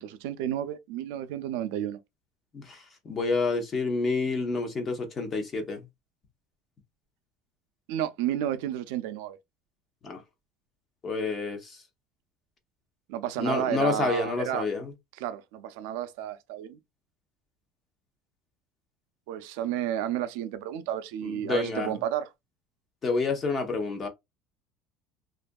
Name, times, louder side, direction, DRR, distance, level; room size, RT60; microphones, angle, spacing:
voice 1, 0.0-2.0 7.9-9.4 13.1-14.6 15.2-16.8 19.3-22.3, right 11 dB, 80° right, 0.4 m, -31 dB
voice 2, 2.5-5.8 10.0-10.2 11.0-11.8 13.4-14.9 21.2-21.9 23.0-24.1, left 3 dB, 25° left, 0.7 m, -29 dB
2.6 x 2.3 x 2.2 m
cardioid pair, 150°, 0 cm